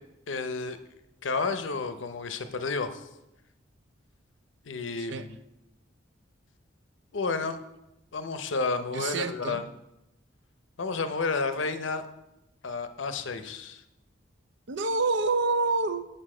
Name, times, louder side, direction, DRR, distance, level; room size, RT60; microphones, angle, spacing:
voice 1, 0.3-0.8 1.2-3.1 4.6-5.3 7.1-7.6 8.1-9.7 10.8-12.1 12.6-13.8, left 4 dB, 75° left, 10 dB, 0.7 m, -31 dB
voice 2, 8.9-9.6 14.7-16.1, right 3 dB, 70° right, 11 dB, 0.5 m, -27 dB
7.7 x 6.9 x 4.9 m, 0.91 s
head